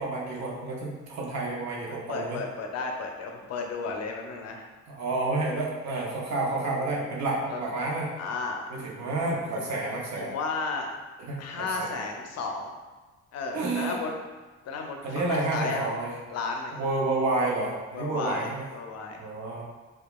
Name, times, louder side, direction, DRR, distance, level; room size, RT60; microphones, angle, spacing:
voice 1, 0.0-2.4 4.9-8.1 8.7-10.3 11.2-12.0 13.5-14.0 15.0-16.1 16.7-18.6 19.2-19.6, right 2 dB, 65° right, -3 dB, 0.7 m, -30 dB
voice 2, 1.9-4.7 7.5-7.6 8.2-8.6 9.6-9.7 10.2-10.9 11.4-12.7 13.3-14.1 14.7-15.8 16.3-16.8 17.9-19.2, left 4 dB, 60° left, 2 dB, 0.5 m, -33 dB
2.8 x 2.3 x 2.2 m, 1.3 s
cardioid pair, 90°, 30 cm